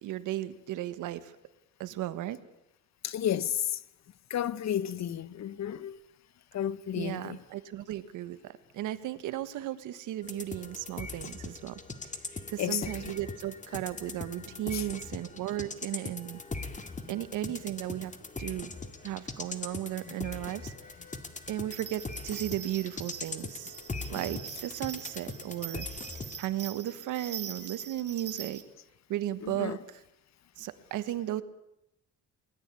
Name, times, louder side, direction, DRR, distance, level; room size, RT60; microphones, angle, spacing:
voice 1, 0.0-1.3 1.8-2.4 6.9-11.8 12.5-16.4 16.7-18.1 18.4-18.7 19.0-20.7 21.5-23.7 24.1-25.9 26.4-28.6 29.1-30.0 30.6-31.4, right 13 dB, 90° right, 1.5 m, -35 dB
voice 2, 3.0-3.8 4.3-6.0 6.5-7.4 12.6-13.1 14.7-14.9 17.0-17.5 20.0-20.1 29.4-29.8, left 10 dB, 60° left, 1.1 m, -33 dB
sound 1, 10.2-26.4, left 3 dB, 25° left, 2.1 m, -41 dB
sound 2, 21.7-28.6, right 8 dB, 50° right, 2.4 m, -43 dB
22.5 x 19.5 x 8.5 m
cardioid pair, 90°, 30 cm